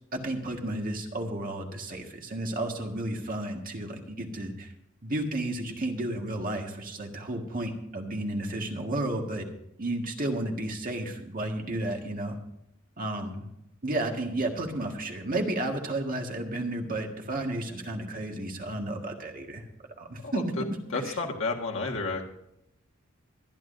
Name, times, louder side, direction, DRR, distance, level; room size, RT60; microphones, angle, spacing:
voice 1, 0.1-4.7 5.0-9.5 9.8-12.4 13.0-13.5 13.8-19.7 20.0-20.5 21.0-21.2, right 1 dB, 40° right, 2 dB, 1.8 m, -32 dB
voice 2, 20.2-20.6 20.9-22.3, left 3 dB, 65° left, 0 dB, 1.7 m, -31 dB
24.5 x 10.5 x 2.7 m, 0.82 s
head